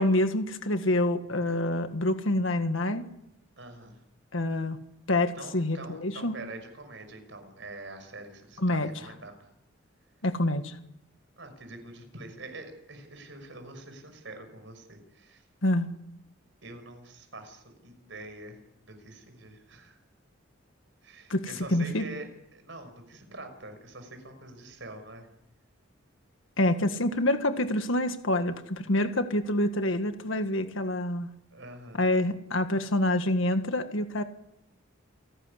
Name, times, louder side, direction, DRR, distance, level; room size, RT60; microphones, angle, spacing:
voice 1, 0.0-3.0 4.3-4.8 5.1-6.3 8.6-8.9 10.2-10.8 15.6-15.9 21.3-22.0 26.6-31.3 32.0-34.2, left 1 dB, 75° left, 8 dB, 1.7 m, -27 dB
voice 2, 3.6-4.0 5.3-9.5 11.4-15.4 16.6-20.0 21.0-25.3 31.5-32.0, right 2 dB, 65° right, 6 dB, 5.8 m, -45 dB
28.5 x 12.0 x 9.9 m, 0.81 s
head